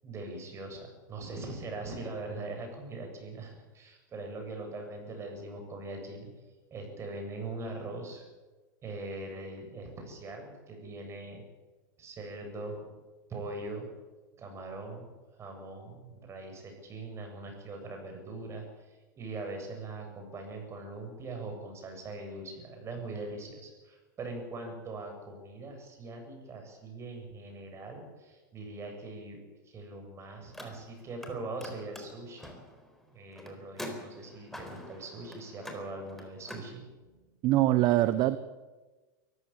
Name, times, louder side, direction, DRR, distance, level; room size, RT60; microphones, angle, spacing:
voice 1, 0.0-6.3 6.7-8.3 8.8-11.4 12.0-13.0 13.3-13.9 14.4-32.5 33.0-37.1, right 2 dB, 25° right, 3 dB, 7.8 m, -41 dB
Car, 30.5-31.3 31.6-36.7, left 1 dB, 5° left, 4.2 m, -45 dB
voice 2, 37.4-38.4, right 15 dB, 45° right, 14 dB, 1.0 m, -23 dB
23.5 x 15.0 x 9.0 m, 1.2 s
hypercardioid pair, 120°, 10 cm